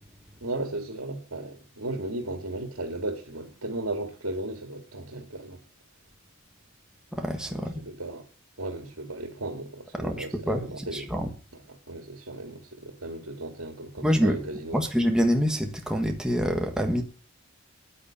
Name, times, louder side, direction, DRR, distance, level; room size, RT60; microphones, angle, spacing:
voice 1, 0.4-5.6 7.5-8.2 8.6-11.1 11.5-14.8, right 2 dB, 80° right, 2.3 m, -35 dB
voice 2, 7.1-7.8 10.0-11.3 14.0-14.4 14.7-17.0, equal, 5° right, 1.4 m, -26 dB
9.9 x 9.6 x 8.6 m
head